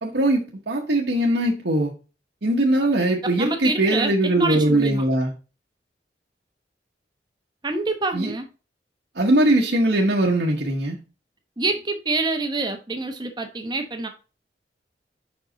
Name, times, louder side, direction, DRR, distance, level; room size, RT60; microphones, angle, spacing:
voice 1, 0.0-1.9 2.4-5.3 8.1-8.3 9.1-11.0, right 1 dB, 70° right, 1.0 m, -21 dB
voice 2, 3.4-5.0 7.6-8.5 11.6-14.1, right 3 dB, 25° right, 0.9 m, -26 dB
5.5 x 5.0 x 3.8 m
head